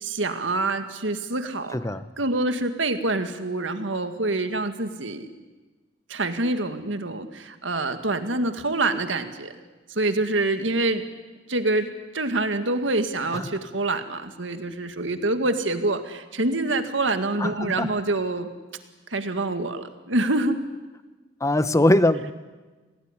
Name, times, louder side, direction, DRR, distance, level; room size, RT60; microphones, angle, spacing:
voice 1, 0.0-1.8 2.2-5.3 6.1-9.5 9.9-11.0 11.5-11.9 12.1-18.5 19.1-20.6, right 2 dB, 80° right, 8 dB, 2.1 m, -26 dB
voice 2, 1.7-2.0 13.3-13.5 17.4-17.9 21.4-22.3, left 1 dB, 15° left, 13 dB, 0.9 m, -21 dB
26.5 x 18.0 x 9.9 m, 1.3 s
head